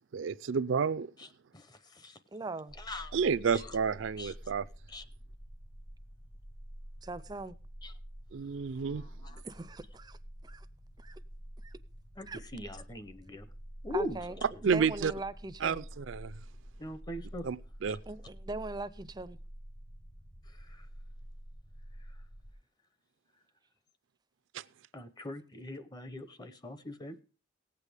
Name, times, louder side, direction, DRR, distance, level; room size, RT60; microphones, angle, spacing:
voice 1, 0.1-1.1 3.1-4.6 8.3-9.0 14.6-15.1 15.6-16.3 17.4-17.6 17.8-18.0 24.5-24.6, right 6 dB, 75° right, 0.4 m, -30 dB
voice 2, 1.5-2.2 2.8-3.1 3.5-3.8 4.2-4.3 4.9-5.0 7.8-7.9 8.8-9.4 12.2-13.5 13.8-14.2 16.8-17.5 17.9-18.0 20.6-20.9 24.9-27.2, left 1 dB, 20° left, 0.7 m, -41 dB
voice 3, 2.3-2.7 7.0-7.6 9.4-10.2 10.4-10.7 11.0-11.2 11.6-11.7 12.3-12.4 13.9-14.4 14.6-15.9 18.1-19.4, right 2 dB, 20° right, 0.5 m, -40 dB
sound 1, 2.7-22.5, equal, 70° left, 5.1 m, -49 dB
18.5 x 8.2 x 3.4 m
head